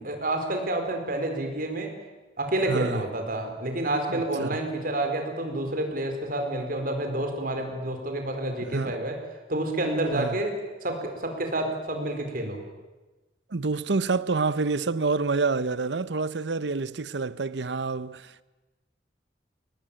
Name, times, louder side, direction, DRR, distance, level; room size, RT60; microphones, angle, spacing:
voice 1, 0.0-1.9 2.4-9.2 9.5-12.6, right 1 dB, 55° right, 4.4 m, -29 dB
voice 2, 2.6-3.0 4.1-4.6 8.7-9.0 10.1-10.4 13.5-18.4, right 4 dB, 85° right, 0.8 m, -28 dB
23.5 x 19.0 x 8.9 m
head